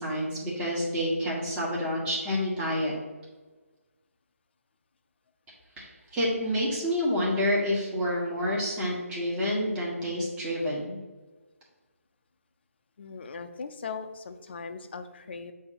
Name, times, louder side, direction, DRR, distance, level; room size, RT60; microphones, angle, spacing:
voice 1, 0.0-2.9 5.8-11.0, equal, 15° right, -5 dB, 1.4 m, -28 dB
voice 2, 13.0-15.5, left 5 dB, 45° left, 8 dB, 0.5 m, -39 dB
7.8 x 2.8 x 5.7 m, 1.3 s
figure-of-eight pair, 145°, 8 cm